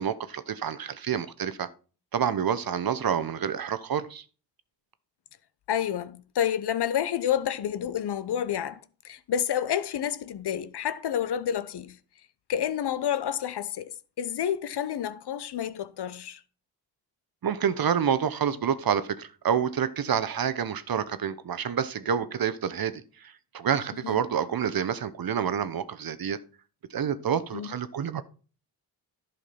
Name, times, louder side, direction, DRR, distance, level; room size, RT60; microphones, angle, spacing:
voice 1, 0.0-1.7 2.1-4.2 17.4-26.4 26.9-28.2, right 8 dB, 50° right, 0.9 m, -28 dB
voice 2, 5.7-12.0 12.5-13.9 14.2-16.4 24.0-24.2 27.5-27.7, left 9 dB, 55° left, 0.8 m, -29 dB
11.0 x 5.8 x 4.3 m
supercardioid pair, 40°, 47 cm